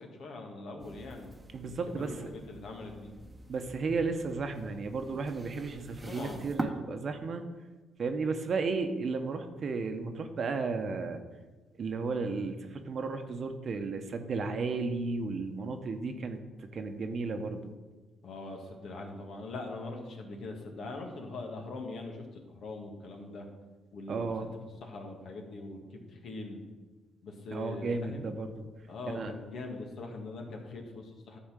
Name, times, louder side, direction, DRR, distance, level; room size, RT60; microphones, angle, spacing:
voice 1, 0.0-1.3 1.7-3.2 6.1-6.5 18.2-23.5 23.9-24.5 24.8-26.6 27.2-28.3 28.9-31.4, left 2 dB, 65° left, 2 dB, 1.9 m, -42 dB
sound 1, 0.8-6.6, right 2 dB, 20° right, 1.0 m, -44 dB
voice 2, 1.5-2.1 3.5-7.4 8.0-11.2 11.8-17.7 24.1-24.5 27.5-28.5 29.1-29.3, right 4 dB, 50° right, 7 dB, 1.0 m, -34 dB
11.0 x 4.3 x 7.4 m, 1.3 s
cardioid pair, 90°, 0 cm